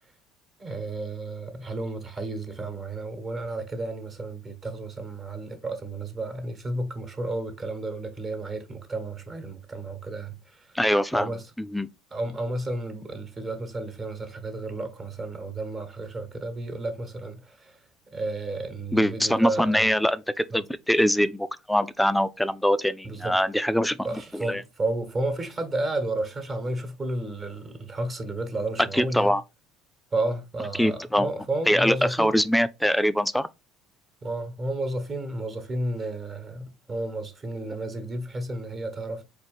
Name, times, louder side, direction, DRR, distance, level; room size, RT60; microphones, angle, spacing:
voice 1, 0.6-10.8 11.1-11.4 12.1-17.8 18.1-19.9 23.0-23.4 24.0-29.3 30.1-32.4 34.2-39.3, right 2 dB, 30° right, 1.2 m, -32 dB
voice 2, 10.7-11.3 11.6-11.9 18.9-24.0 24.3-24.6 28.9-29.4 30.8-31.3 31.7-33.5, equal, 5° left, 0.4 m, -23 dB
4.1 x 2.5 x 3.4 m
hypercardioid pair, 75°, 0 cm